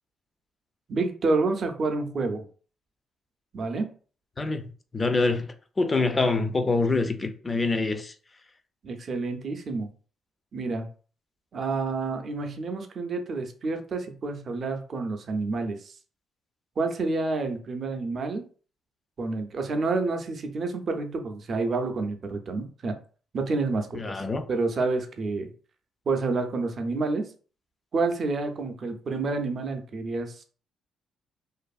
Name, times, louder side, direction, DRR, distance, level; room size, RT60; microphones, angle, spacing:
voice 1, 0.9-2.4 3.5-3.9 8.8-9.9 10.5-10.9 11.5-16.0 16.8-18.4 19.2-23.0 23.3-24.0 24.5-25.5 26.1-27.3 27.9-30.4, right 3 dB, 50° right, 0.5 m, -29 dB
voice 2, 4.4-8.1 23.9-24.4, left 3 dB, 25° left, 0.4 m, -26 dB
2.5 x 2.5 x 2.3 m
cardioid pair, 90°, 0 cm